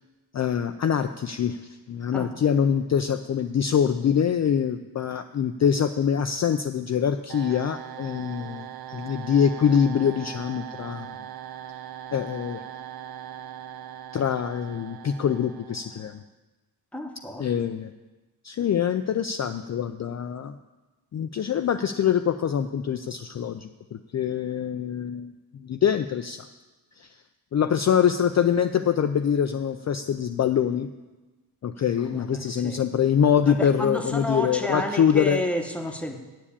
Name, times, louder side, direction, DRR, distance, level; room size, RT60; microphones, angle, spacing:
voice 1, 0.3-1.6 1.9-11.1 12.1-12.6 14.1-16.2 17.4-17.9 18.4-20.5 21.1-25.3 25.6-26.5 27.0-27.1 27.5-30.9 31.6-35.4, left 8 dB, 45° left, 7 dB, 0.4 m, -24 dB
sound 1, 7.3-16.2, right 10 dB, 65° right, 0.6 m, -40 dB
voice 2, 16.9-17.7 32.0-32.8 33.4-36.2, left 1 dB, 5° left, 4 dB, 1.0 m, -31 dB
8.5 x 7.3 x 8.6 m, 1.2 s
wide cardioid pair, 125°, 40 cm